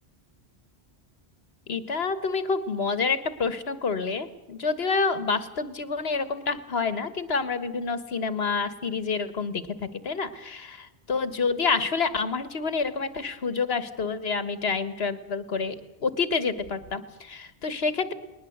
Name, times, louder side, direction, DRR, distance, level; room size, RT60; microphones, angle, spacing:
voice 1, 1.7-18.1, left 4 dB, 70° left, 14 dB, 1.7 m, -28 dB
20.5 x 20.0 x 8.0 m, 1.0 s
omnidirectional pair, 1.1 m